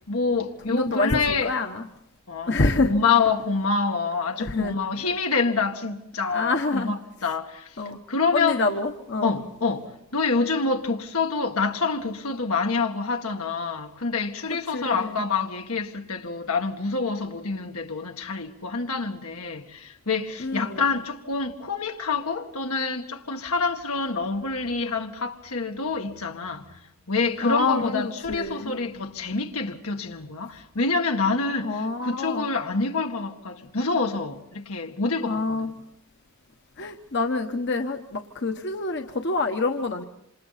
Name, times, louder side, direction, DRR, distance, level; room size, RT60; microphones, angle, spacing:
voice 1, 0.1-1.5 2.3-2.6 2.8-7.7 8.1-8.6 9.2-26.6 27.1-31.7 32.0-35.7, left 4 dB, 85° left, 1.8 m, -27 dB
voice 2, 0.7-1.9 2.5-3.0 4.3-5.0 6.3-6.9 7.8-8.0 8.3-9.3 14.5-15.2 20.4-20.9 27.4-28.7 31.6-32.5 35.2-35.7 36.8-40.0, left 3 dB, 55° left, 1.1 m, -27 dB
27.5 x 27.0 x 4.2 m
head